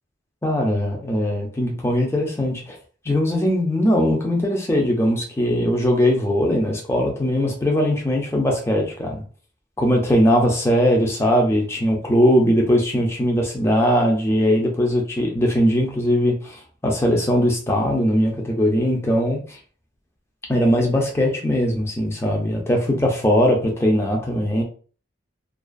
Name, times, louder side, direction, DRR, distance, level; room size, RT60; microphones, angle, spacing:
voice 1, 0.4-2.8 3.1-9.2 9.8-19.6 20.5-24.6, equal, 15° left, 0 dB, 0.5 m, -20 dB
2.4 x 2.3 x 2.3 m, 0.40 s
head